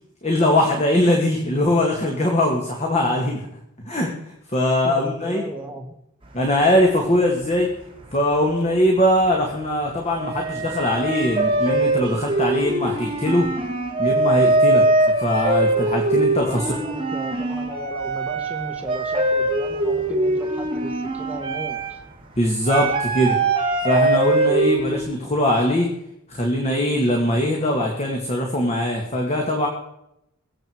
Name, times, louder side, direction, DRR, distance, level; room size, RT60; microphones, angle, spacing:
voice 1, 0.2-3.5 3.9-4.1 4.5-5.5 6.3-7.7 8.1-13.5 14.0-14.9 15.2-16.6 22.4-23.4 23.8-25.9 26.3-29.7, left 1 dB, 30° left, 0 dB, 2.1 m, -21 dB
voice 2, 4.8-5.9 16.4-22.0, right 1 dB, 5° right, 0 dB, 1.7 m, -36 dB
sound 1, 6.4-7.8 8.0-8.8 9.1-25.0, right 2 dB, 25° right, 2.3 m, -22 dB
23.0 x 7.9 x 4.7 m, 0.80 s
head